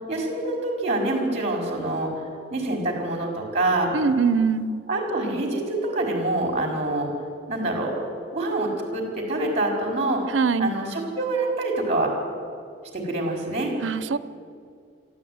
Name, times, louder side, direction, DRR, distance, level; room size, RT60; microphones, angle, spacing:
voice 1, 0.1-2.1 2.5-3.9 4.9-7.1 7.5-7.9 8.3-10.2 10.6-12.1 12.9-13.7, right 2 dB, 35° right, 4.8 m, -26 dB
voice 2, 3.9-4.8 10.3-10.8 13.8-14.2, right 5 dB, 75° right, 0.7 m, -22 dB
23.0 x 14.5 x 9.4 m
head